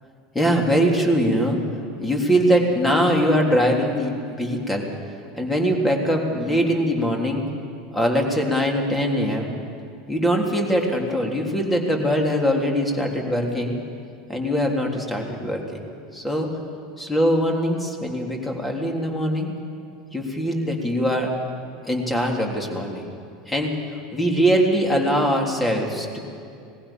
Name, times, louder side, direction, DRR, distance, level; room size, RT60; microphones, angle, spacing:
voice 1, 0.3-1.6 2.0-4.9 5.3-7.4 7.9-9.5 10.1-13.8 14.3-15.8 16.1-16.5 17.0-19.5 20.1-21.3 21.9-23.1 23.5-23.8 24.1-26.2, equal, 10° left, 1 dB, 3.5 m, -22 dB
20.0 x 15.5 x 8.8 m, 2.4 s
hypercardioid pair, 80°, 0 cm